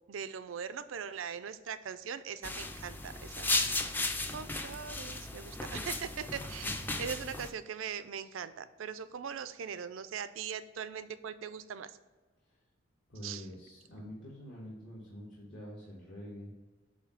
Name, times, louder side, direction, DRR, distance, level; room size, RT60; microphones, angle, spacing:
voice 1, 0.1-3.5 4.3-11.9 13.2-13.5, right 7 dB, 85° right, 13 dB, 0.4 m, -41 dB
sound 1, 2.4-7.5, left 2 dB, 10° left, 0.4 m, -35 dB
voice 2, 6.4-6.9 13.1-16.5, equal, 65° left, -5 dB, 1.4 m, -46 dB
8.1 x 2.7 x 5.8 m, 1.3 s
head